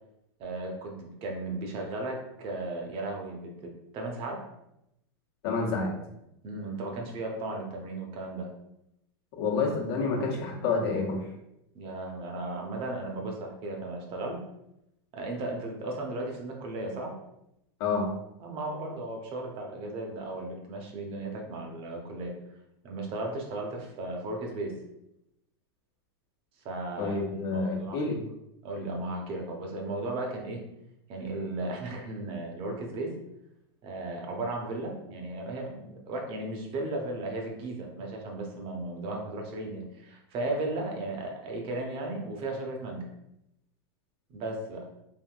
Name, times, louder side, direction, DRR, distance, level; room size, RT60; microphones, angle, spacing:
voice 1, 0.4-4.4 6.4-8.5 10.5-11.0 11.7-14.4 15.1-17.1 18.4-22.3 22.8-24.8 26.6-28.0 28.6-30.6 31.1-33.1 33.8-43.1 44.3-44.9, right 2 dB, 40° right, 1 dB, 0.8 m, -35 dB
voice 2, 5.4-5.9 9.4-11.2 17.8-18.1 27.0-28.2, left 4 dB, 65° left, -1 dB, 1.0 m, -28 dB
3.6 x 2.6 x 2.4 m, 0.83 s
hypercardioid pair, 120°, 14 cm